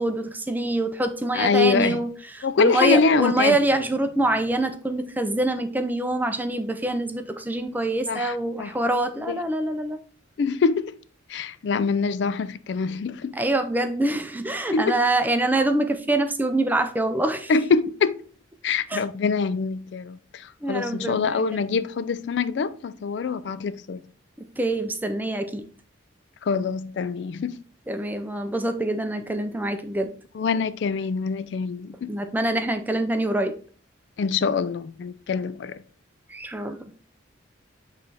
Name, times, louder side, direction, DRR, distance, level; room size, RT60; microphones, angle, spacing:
voice 1, 0.0-10.0 13.3-17.5 18.9-19.0 20.6-21.4 24.4-25.6 27.9-30.1 32.1-33.5 36.3-36.9, right 1 dB, 10° right, 0.5 m, -25 dB
voice 2, 1.3-2.0 2.4-3.6 8.1-8.7 9.3-9.4 10.4-10.9 11.3-13.3 14.7-15.0 17.5-18.2 18.6-24.0 26.4-27.6 30.3-32.1 34.2-35.8, left 5 dB, 60° left, 0.3 m, -24 dB
8.1 x 3.2 x 4.1 m
head